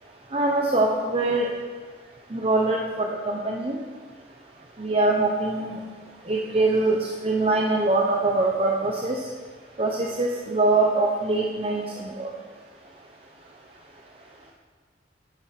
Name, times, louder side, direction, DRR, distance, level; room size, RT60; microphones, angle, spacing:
voice 1, 0.3-1.5 2.3-3.8 4.8-5.8 6.3-7.0 7.2-9.2 9.8-12.3, right 2 dB, 35° right, 0 dB, 0.8 m, -23 dB
10.5 x 10.0 x 4.1 m, 1.5 s
head